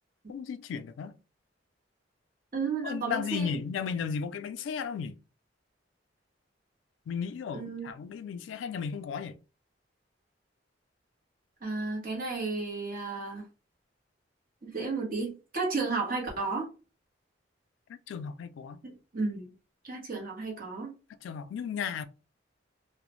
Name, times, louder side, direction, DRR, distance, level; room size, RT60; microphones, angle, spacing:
voice 1, 0.3-1.1 2.8-5.2 7.1-9.4 18.1-18.8 21.2-22.1, left 6 dB, 80° left, 0.3 m, -35 dB
voice 2, 2.5-3.6 7.5-7.9 11.6-13.5 14.6-16.7 18.8-19.5 19.8-21.0, right 4 dB, 50° right, 1.0 m, -33 dB
2.3 x 2.0 x 3.0 m
head